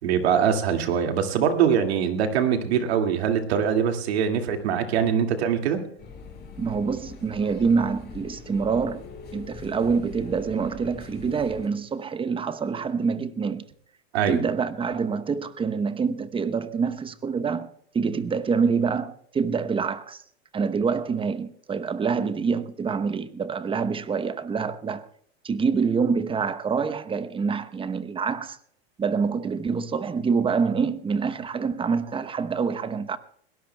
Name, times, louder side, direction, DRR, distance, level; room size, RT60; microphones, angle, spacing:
voice 1, 0.0-5.8 14.1-14.4, right 8 dB, 80° right, 2.2 m, -23 dB
sound 1, 6.0-11.7, left 5 dB, 30° left, 7.0 m, -43 dB
voice 2, 6.6-9.0 9.3-13.6 14.3-20.2 20.5-25.1 25.4-28.6 29.0-33.2, right 5 dB, 15° right, 0.8 m, -26 dB
21.5 x 18.5 x 2.2 m
hypercardioid pair, 110°, 32 cm